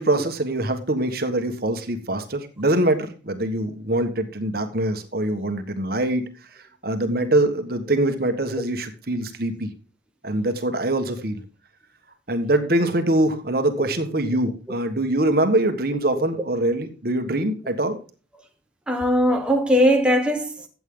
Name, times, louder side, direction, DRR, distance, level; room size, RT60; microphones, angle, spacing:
voice 1, 0.0-6.2 6.8-9.7 10.2-11.4 12.3-18.0, right 1 dB, 50° right, 1.4 m, -23 dB
voice 2, 18.9-20.7, equal, 5° right, 1.1 m, -20 dB
13.5 x 8.3 x 3.8 m
head